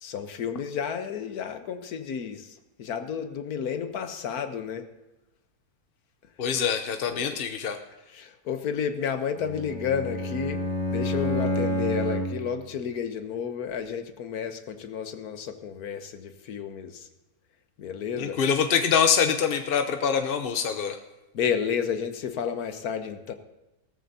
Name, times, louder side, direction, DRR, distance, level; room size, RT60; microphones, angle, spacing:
voice 1, 0.0-4.9 7.0-7.4 8.1-10.6 10.9-17.1 17.8-18.4 21.3-23.3, left 7 dB, 70° left, 8 dB, 1.4 m, -31 dB
voice 2, 6.4-7.8 18.2-21.0, left 7 dB, 50° left, 6 dB, 0.7 m, -24 dB
Bowed string instrument, 9.3-12.5, left 1 dB, 30° left, 1.5 m, -29 dB
17.0 x 13.5 x 2.8 m, 1.0 s
omnidirectional pair, 1.7 m